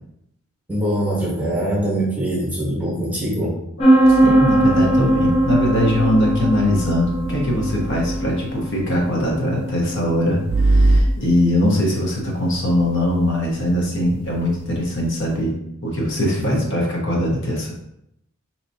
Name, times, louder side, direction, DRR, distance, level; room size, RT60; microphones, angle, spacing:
voice 1, 0.7-3.6 16.4-16.6, right 1 dB, 5° right, -5 dB, 1.0 m, -23 dB
voice 2, 3.8-17.7, left 1 dB, 55° left, -2 dB, 1.0 m, -21 dB
sound 1, 3.8-15.3, right 1 dB, 25° left, 0.7 m, -21 dB
sound 2, 4.0-8.4 10.5-11.0, right 2 dB, 55° right, 0.4 m, -23 dB
4.5 x 2.9 x 2.7 m, 0.76 s
head